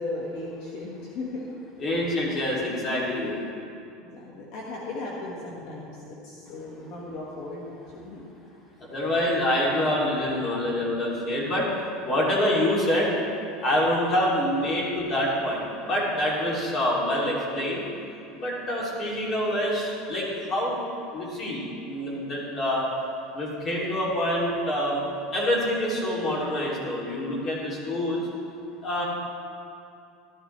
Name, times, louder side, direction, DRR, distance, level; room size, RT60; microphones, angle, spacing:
voice 1, 0.0-1.5 4.0-8.2, left 2 dB, 60° left, -3 dB, 1.6 m, -36 dB
voice 2, 1.8-3.4 8.8-11.7 12.0-13.1 13.6-17.8 18.4-20.8 21.1-22.8 23.3-25.0 25.3-28.2 28.8-29.0, left 1 dB, 35° left, -4 dB, 2.9 m, -26 dB
13.5 x 13.0 x 3.3 m, 2.6 s
supercardioid pair, 140°, 0 cm